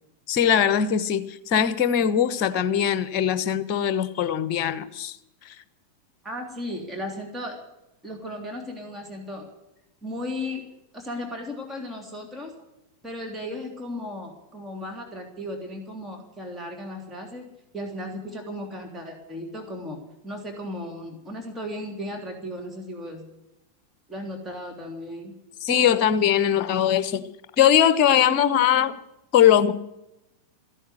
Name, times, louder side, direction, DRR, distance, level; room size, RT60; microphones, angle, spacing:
voice 1, 0.3-5.2 5.4-5.5 25.6-27.3 27.6-28.9 29.3-29.7, left 9 dB, 40° left, 14 dB, 1.2 m, -21 dB
voice 2, 6.2-7.6 8.0-9.5 10.0-10.6 10.9-12.5 13.0-17.5 17.7-23.2 24.1-25.3, left 1 dB, 10° right, 1 dB, 3.2 m, -35 dB
15.0 x 11.0 x 8.2 m, 0.88 s
figure-of-eight pair, 90°, 0 cm